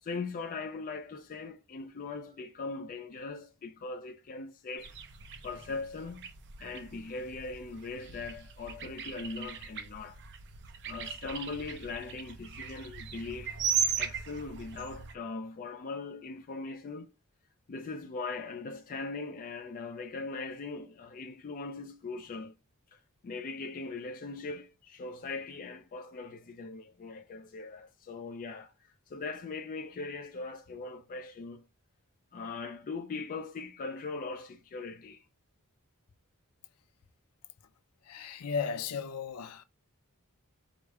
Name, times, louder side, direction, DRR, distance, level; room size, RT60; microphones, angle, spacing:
voice 1, 0.0-4.9 5.4-6.3 6.6-10.2 10.9-13.6 14.0-17.1 17.7-22.6 22.9-31.6 32.3-35.2, left 3 dB, 40° left, 0.4 m, -40 dB
sound 1, 4.8-15.2, right 7 dB, 55° right, 0.6 m, -38 dB
voice 2, 38.0-39.6, left 6 dB, 90° left, 0.5 m, -35 dB
4.9 x 2.1 x 4.5 m
head